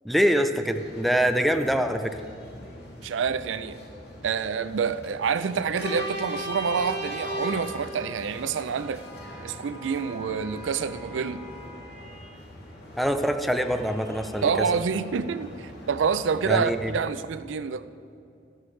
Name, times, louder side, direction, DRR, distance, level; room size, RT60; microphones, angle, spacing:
voice 1, 0.0-2.1 13.0-14.5 16.5-16.9, equal, ahead, 7 dB, 0.4 m, -24 dB
sound 1, 0.7-16.9, equal, 60° left, 2.4 m, -40 dB
voice 2, 3.0-3.8 4.2-9.0 9.4-11.5 14.4-17.8, right 6 dB, 85° right, 13 dB, 0.4 m, -27 dB
13.0 x 12.5 x 3.2 m, 2.6 s
head